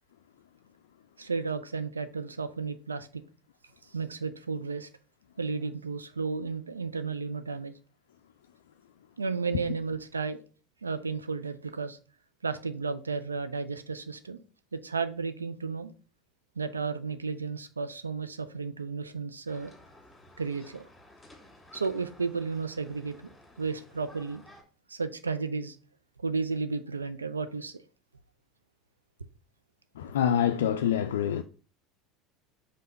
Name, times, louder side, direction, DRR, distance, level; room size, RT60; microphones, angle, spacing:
voice 1, 1.2-3.2 3.9-4.9 5.4-7.7 9.2-10.4 10.8-12.0 12.4-14.4 14.7-15.9 16.6-19.7 20.4-20.9 21.7-23.2 23.6-24.4 24.9-25.8 26.2-27.8, right 4 dB, 85° right, 0.4 m, -33 dB
sound 1, 19.5-24.6, left 1 dB, 10° left, 1.9 m, -55 dB
voice 2, 30.0-31.4, left 9 dB, 70° left, 0.3 m, -26 dB
5.5 x 3.4 x 5.1 m
figure-of-eight pair, 70°, 0 cm